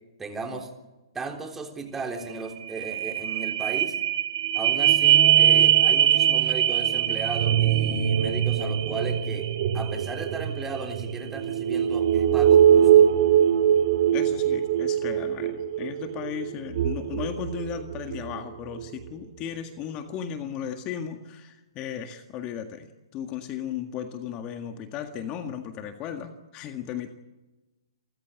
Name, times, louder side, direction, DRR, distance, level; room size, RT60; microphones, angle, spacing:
voice 1, 0.2-0.7 1.1-4.0 4.5-13.1, right 4 dB, 10° right, 3 dB, 3.6 m, -36 dB
sound 1, 2.0-2.1 2.3-18.3 18.8-18.9, right 10 dB, 50° right, 2.8 m, -22 dB
voice 2, 14.1-27.1, left 8 dB, 30° left, 7 dB, 1.8 m, -36 dB
29.0 x 15.0 x 8.3 m, 1.1 s
hypercardioid pair, 125°, 3 cm